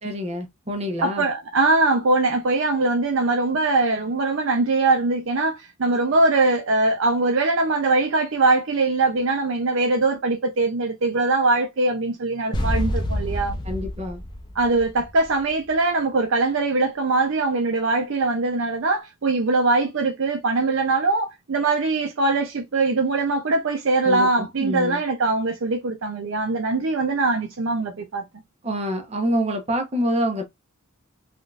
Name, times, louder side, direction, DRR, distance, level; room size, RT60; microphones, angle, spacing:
voice 1, 0.0-1.2 13.6-14.2 24.0-25.0 28.6-30.4, equal, 30° right, 0.8 m, -26 dB
voice 2, 1.0-13.6 14.6-28.2, right 3 dB, 60° right, 0.5 m, -22 dB
sound 1, 12.5-15.5, left 1 dB, 20° left, 0.6 m, -27 dB
3.5 x 2.4 x 2.4 m
head